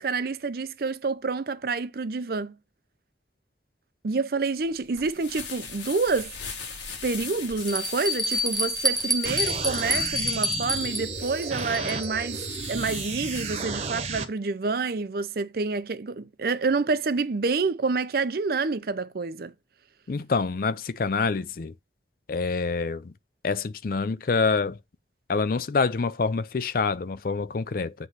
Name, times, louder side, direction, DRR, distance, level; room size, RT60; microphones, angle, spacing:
voice 1, 0.0-2.6 4.0-6.3 7.0-19.5, right 4 dB, 55° right, 0.5 m, -28 dB
sound 1, 4.6-13.6, left 5 dB, 90° left, 1.9 m, -40 dB
Bell, 6.1-6.2 6.8-6.9 7.7-12.2, equal, ahead, 0.8 m, -28 dB
sound 2, 9.2-14.2, right 4 dB, 35° right, 1.0 m, -33 dB
voice 2, 20.1-21.7 22.3-23.1 23.4-24.8 25.3-27.9, left 4 dB, 50° left, 0.4 m, -26 dB
8.1 x 3.1 x 5.5 m
head